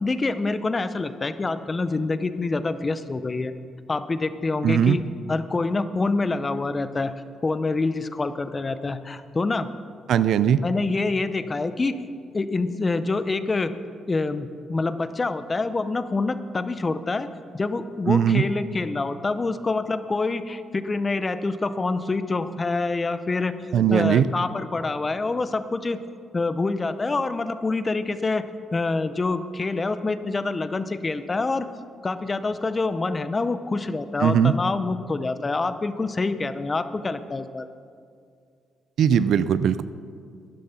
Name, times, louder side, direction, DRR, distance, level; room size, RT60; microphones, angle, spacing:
voice 1, 0.0-3.5 3.9-5.0 5.3-7.1 7.4-9.7 10.6-12.0 12.3-13.7 14.1-17.3 17.5-26.0 26.3-28.5 28.7-31.7 32.0-37.7, left 3 dB, 25° left, 12 dB, 0.7 m, -26 dB
voice 2, 4.6-5.0 10.1-10.6 18.1-18.4 23.7-24.2 34.2-34.5 39.0-39.8, right 8 dB, 70° right, 15 dB, 0.4 m, -19 dB
12.5 x 10.5 x 5.7 m, 2.3 s
cardioid pair, 90°, 0 cm